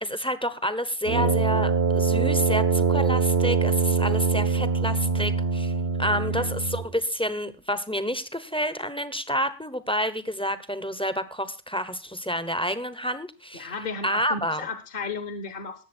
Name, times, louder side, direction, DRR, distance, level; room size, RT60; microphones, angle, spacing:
voice 1, 0.0-5.7 6.0-13.8 14.0-14.6, equal, 5° left, 13 dB, 0.8 m, -29 dB
Brass instrument, 1.0-6.9, right 5 dB, 60° right, 1.5 m, -23 dB
voice 2, 13.5-15.8, left 4 dB, 50° left, 10 dB, 1.3 m, -34 dB
19.0 x 7.4 x 4.4 m, 0.31 s
omnidirectional pair, 1.2 m